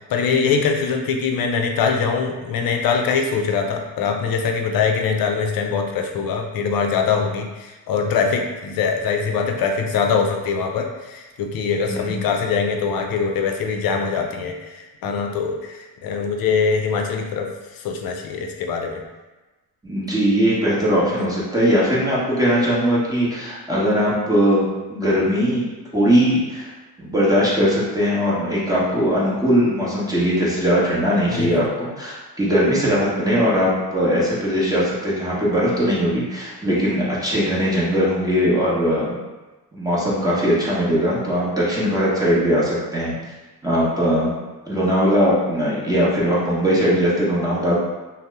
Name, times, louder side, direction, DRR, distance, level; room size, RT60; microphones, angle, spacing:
voice 1, 0.1-19.0 21.2-21.3 31.3-31.6, left 5 dB, 65° left, 3 dB, 0.5 m, -23 dB
voice 2, 19.8-24.6 24.9-25.6 25.9-26.7 27.0-39.2 39.7-43.1 43.6-44.3 44.7-47.8, equal, 10° right, -8 dB, 0.9 m, -20 dB
2.7 x 2.0 x 3.3 m, 1.1 s
cardioid pair, 85°, 39 cm